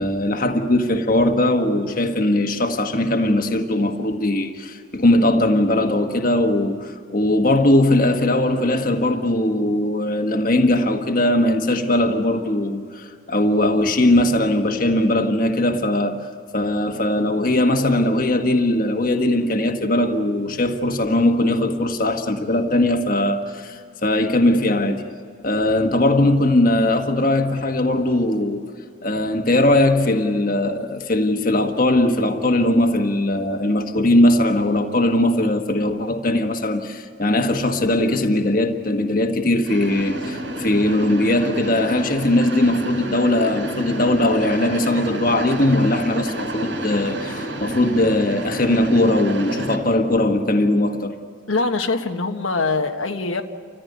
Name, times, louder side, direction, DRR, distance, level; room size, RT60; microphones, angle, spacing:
voice 1, 0.0-16.2 16.5-25.0 25.4-28.7 29.0-51.1, left 1 dB, 45° left, 1.4 m, -20 dB
sound 1, 39.6-49.8, right 1 dB, 70° right, 3.6 m, -30 dB
voice 2, 51.5-53.4, left 3 dB, 90° left, 1.4 m, -23 dB
29.5 x 14.5 x 9.5 m
head